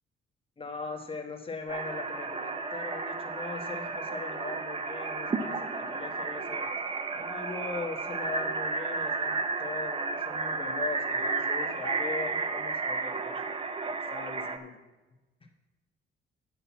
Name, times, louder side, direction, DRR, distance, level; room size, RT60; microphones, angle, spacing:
voice 1, 0.6-14.7, left 4 dB, 25° left, 4 dB, 1.3 m, -40 dB
sound 1, 1.7-14.6, right 4 dB, 30° right, 0.7 m, -32 dB
7.8 x 5.9 x 7.3 m, 1.1 s
cardioid pair, 90°, 20 cm